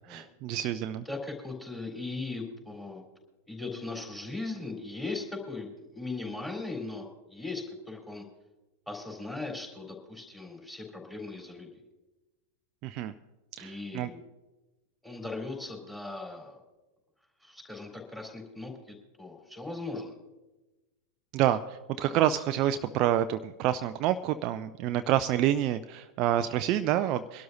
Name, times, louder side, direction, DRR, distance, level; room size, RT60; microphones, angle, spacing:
voice 1, 0.1-1.0 12.8-13.1 13.6-14.1 21.3-21.6 22.0-27.4, right 12 dB, 40° right, 10 dB, 0.4 m, -28 dB
voice 2, 1.1-3.0 3.5-8.2 8.9-11.7 13.6-14.2 15.0-16.6 17.4-20.1, left 3 dB, 5° left, 0 dB, 3.9 m, -38 dB
24.0 x 12.0 x 2.7 m, 1.1 s
figure-of-eight pair, 90°, 0 cm